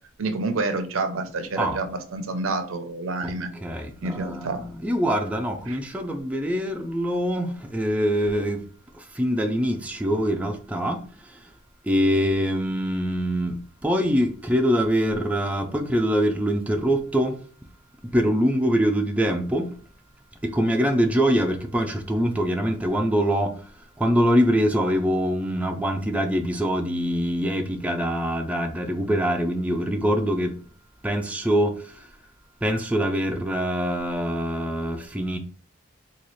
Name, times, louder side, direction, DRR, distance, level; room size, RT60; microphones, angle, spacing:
voice 1, 0.2-3.5 4.0-4.6 5.7-5.8, right 3 dB, 85° right, 0.6 m, -28 dB
voice 2, 3.2-8.6 9.0-11.4 11.8-17.3 18.1-19.7 20.4-23.5 24.0-30.6 31.0-32.0 32.6-35.4, equal, 5° right, 0.3 m, -24 dB
4.0 x 2.3 x 3.1 m
head